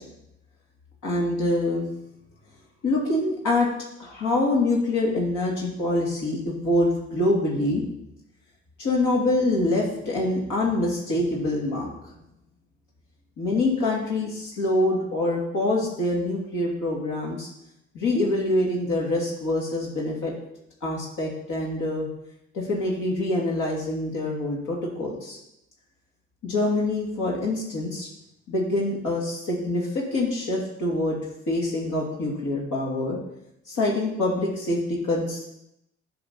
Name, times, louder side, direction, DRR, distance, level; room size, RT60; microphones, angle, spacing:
voice 1, 1.0-1.9 2.8-3.7 4.0-7.8 8.8-11.9 13.4-17.5 17.9-20.3 20.8-22.1 22.5-25.4 26.4-28.1 28.5-31.2 31.5-33.2 33.7-35.4, left 2 dB, 55° left, -4 dB, 2.8 m, -25 dB
11.5 x 5.3 x 4.2 m, 0.82 s
hypercardioid pair, 55°, 36 cm